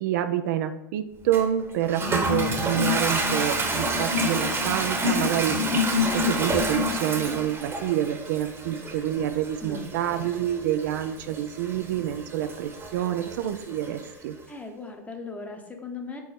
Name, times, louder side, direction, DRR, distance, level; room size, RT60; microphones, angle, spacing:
voice 1, 0.0-5.5 6.1-14.4, right 11 dB, 65° right, 9 dB, 0.5 m, -27 dB
Toilet flush, 1.3-14.1, equal, 25° right, 1.1 m, -28 dB
voice 2, 9.6-9.9 14.5-16.2, left 3 dB, 15° left, 4 dB, 1.0 m, -38 dB
4.6 x 4.3 x 5.2 m, 0.89 s
hypercardioid pair, 95°, 10 cm